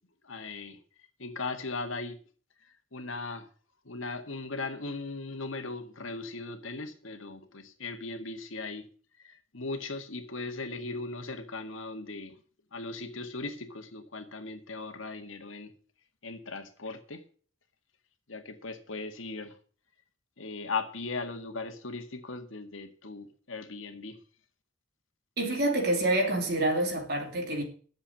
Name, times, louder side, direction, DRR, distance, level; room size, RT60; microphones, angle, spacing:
voice 1, 0.2-0.8 1.2-2.2 2.9-3.5 3.9-8.9 9.2-12.4 12.7-15.7 16.2-17.2 18.3-19.6 20.4-24.2, left 3 dB, 85° left, 1.9 m, -38 dB
voice 2, 25.4-27.6, right 1 dB, 55° right, 3.4 m, -27 dB
10.5 x 7.5 x 7.3 m
head